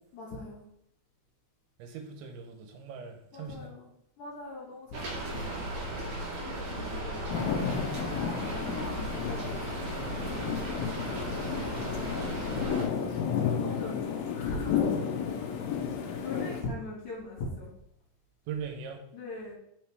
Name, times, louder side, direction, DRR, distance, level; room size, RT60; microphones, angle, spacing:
voice 1, 0.1-0.7 3.3-3.9 4.2-5.7 6.3-8.0 8.4-10.2 12.7-15.1 16.1-17.7 19.1-19.6, left 2 dB, 55° left, -4 dB, 2.6 m, -42 dB
voice 2, 1.8-3.7 10.9-11.9 13.1-13.2 18.5-19.0, right 6 dB, 80° right, 5 dB, 3.2 m, -41 dB
Rain, 4.9-12.8, right 1 dB, 50° right, 2.9 m, -36 dB
sound 1, 7.3-16.6, left 7 dB, 85° left, 2.1 m, -32 dB
6.2 x 5.6 x 4.7 m, 0.73 s
omnidirectional pair, 5.2 m